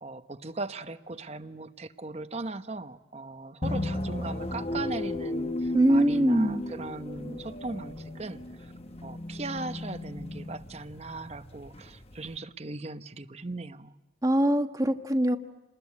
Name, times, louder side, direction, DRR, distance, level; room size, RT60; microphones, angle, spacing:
voice 1, 0.0-8.7 9.0-13.9, right 2 dB, 35° right, 10 dB, 1.0 m, -38 dB
sound 1, 3.6-12.4, left 1 dB, 35° left, 1.2 m, -35 dB
voice 2, 5.7-6.6 14.2-15.4, equal, 20° right, 6 dB, 1.3 m, -23 dB
29.0 x 20.5 x 9.7 m, 1.1 s
head